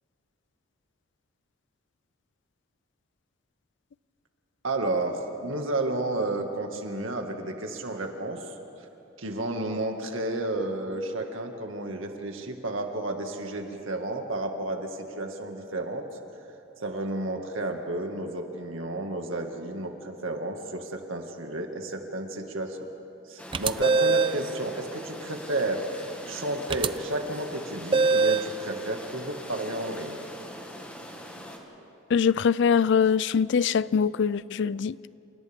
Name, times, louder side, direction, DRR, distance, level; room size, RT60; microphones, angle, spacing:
voice 1, 4.6-8.5 9.2-16.0 16.8-22.8 23.3-25.8 26.3-30.2, right 2 dB, 75° right, 2.0 m, -32 dB
sound 1, 23.4-31.6, equal, 5° left, 1.9 m, -42 dB
sound 2, 23.5-24.4 26.7-26.9 27.9-28.5, right 4 dB, 25° right, 0.4 m, -22 dB
voice 2, 32.1-35.1, left 6 dB, 60° left, 0.4 m, -23 dB
29.0 x 28.5 x 3.7 m
head